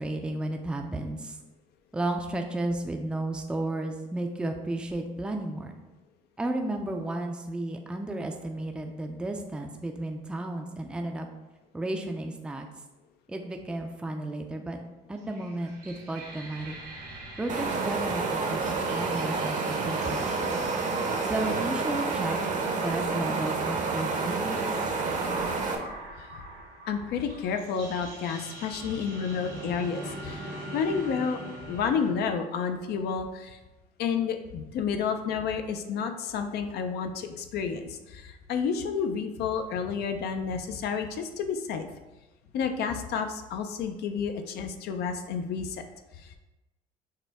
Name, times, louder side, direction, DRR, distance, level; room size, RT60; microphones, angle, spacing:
voice 1, 0.0-1.4 1.9-5.8 6.4-11.3 11.7-12.7 13.3-14.8 15.1-16.8 17.4-20.6 21.2-22.4 22.8-24.6, right 2 dB, 5° right, 3 dB, 0.4 m, -33 dB
sound 1, 15.2-32.1, right 1 dB, 90° right, 1.5 m, -43 dB
sound 2, 17.5-25.8, right 4 dB, 45° right, 0.7 m, -29 dB
voice 2, 26.9-31.4 31.7-33.6 34.0-41.9 42.5-45.9 46.2-46.4, left 6 dB, 75° left, 6 dB, 0.5 m, -30 dB
6.5 x 2.2 x 3.4 m, 1.0 s
cardioid pair, 110°, 17 cm